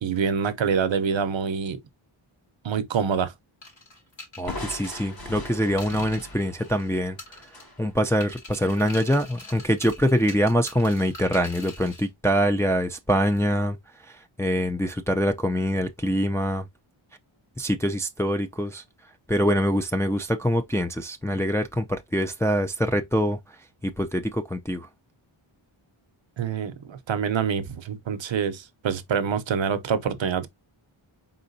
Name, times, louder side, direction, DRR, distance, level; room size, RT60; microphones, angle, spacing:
voice 1, 0.0-1.8 2.6-3.3 26.4-30.5, right 6 dB, 65° right, 0.7 m, -26 dB
sound 1, 3.6-6.9 7.2-7.9 8.2-12.1, left 2 dB, 65° left, 2.4 m, -44 dB
voice 2, 4.4-7.2 7.8-13.8 14.4-16.6 17.6-18.8 19.3-23.4 23.8-24.9, equal, 5° left, 0.4 m, -24 dB
Crushing, 4.5-8.2, left 1 dB, 45° left, 1.6 m, -40 dB
4.4 x 3.9 x 2.6 m
wide cardioid pair, 105°, 49 cm